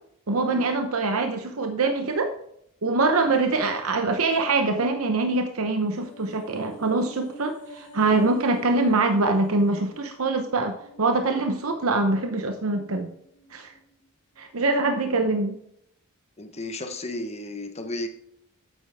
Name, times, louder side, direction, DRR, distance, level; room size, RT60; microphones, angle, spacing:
voice 1, 0.3-2.3 2.8-13.1 13.5-13.7 14.4-15.6, right 3 dB, 85° right, 5 dB, 0.9 m, -24 dB
sound 1, 5.6-14.1 14.4-14.5, right 1 dB, 75° left, 2.8 m, -48 dB
voice 2, 16.4-18.1, left 2 dB, 30° left, 7 dB, 1.2 m, -33 dB
9.0 x 8.1 x 3.5 m, 0.73 s
head